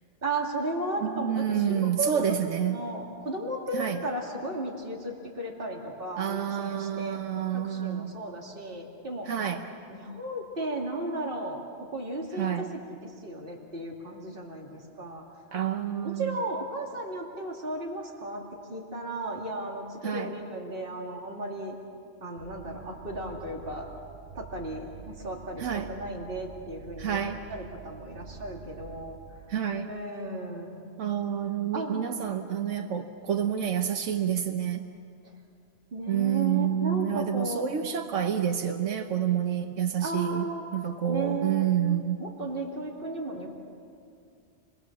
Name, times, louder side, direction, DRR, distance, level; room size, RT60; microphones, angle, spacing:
voice 1, 0.2-2.2 2.7-7.2 7.5-9.4 9.9-11.6 11.9-15.2 16.0-18.4 18.7-21.8 22.2-23.9 24.3-27.2 27.5-29.2 29.9-30.9 31.7-32.0 35.9-37.6 40.0-40.6 41.1-41.7 42.2-43.5, right 2 dB, 50° right, -1 dB, 2.7 m, -35 dB
voice 2, 1.0-2.8 3.7-4.0 6.2-8.1 9.3-9.6 12.4-12.7 15.5-16.3 20.0-20.3 25.6-25.9 27.0-27.4 29.5-29.9 31.0-34.8 36.1-40.4 40.7-42.2, right 9 dB, 90° right, 5 dB, 1.3 m, -28 dB
sound 1, 22.4-29.4, right 6 dB, 70° right, 3.8 m, -47 dB
29.0 x 20.5 x 7.3 m, 2.4 s
omnidirectional pair, 1.2 m